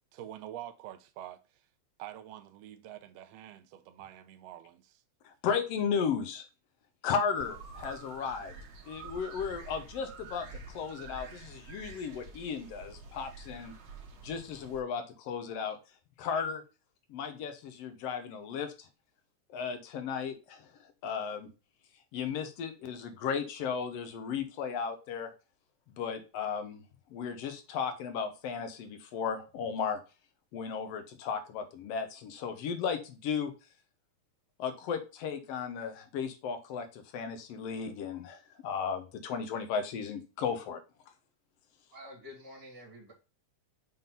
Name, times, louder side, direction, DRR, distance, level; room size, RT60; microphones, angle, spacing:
voice 1, 0.1-1.4 2.0-5.0, right 12 dB, 80° right, 1.5 m, -46 dB
voice 2, 5.2-6.4 7.0-8.6 8.9-13.7 14.2-15.8 16.2-16.6 17.1-18.9 19.5-20.7 21.0-21.5 22.1-25.3 26.0-26.8 27.1-30.0 30.5-33.5 34.6-40.8, left 6 dB, 65° left, 1.7 m, -35 dB
sound 1, 7.4-14.8, right 5 dB, 55° right, 1.6 m, -49 dB
sound 2, 8.2-12.5 12.7-13.1, equal, 85° left, 0.9 m, -54 dB
voice 3, 41.9-43.1, left 1 dB, 10° right, 1.4 m, -48 dB
5.9 x 3.7 x 5.3 m
omnidirectional pair, 3.6 m